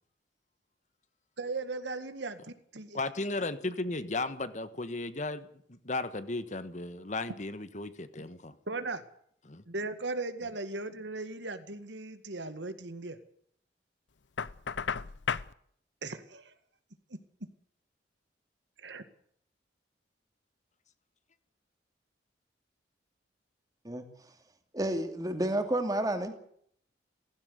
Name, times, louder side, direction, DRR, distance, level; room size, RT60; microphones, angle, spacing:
voice 1, 1.4-3.0 8.7-9.0 9.7-13.2 16.0-16.5 18.8-19.0, right 3 dB, 80° right, 10 dB, 2.0 m, -37 dB
voice 2, 2.9-8.5 9.4-9.6, left 2 dB, 40° left, 12 dB, 1.4 m, -35 dB
Knock, 14.4-15.5, left 6 dB, 85° left, 0.7 m, -33 dB
voice 3, 24.7-26.3, right 1 dB, 20° right, 7 dB, 2.7 m, -30 dB
16.5 x 16.0 x 9.7 m, 0.65 s
head